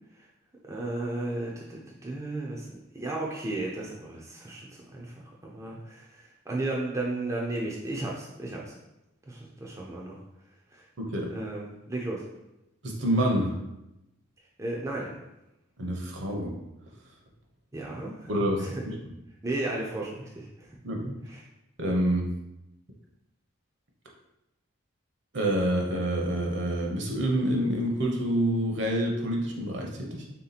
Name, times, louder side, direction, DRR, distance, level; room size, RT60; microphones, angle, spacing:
voice 1, 0.7-5.1 5.4-8.7 9.3-10.2 10.7-10.8 11.3-12.2 14.6-15.2 17.7-18.7 19.4-20.7 21.3-21.4, right 2 dB, 15° right, -3 dB, 0.4 m, -34 dB
voice 2, 11.0-11.3 12.8-13.5 15.8-16.5 18.3-18.9 20.8-21.1 21.8-22.3 25.3-30.2, right 1 dB, 55° right, 0 dB, 0.7 m, -27 dB
3.5 x 2.8 x 4.0 m, 0.90 s
head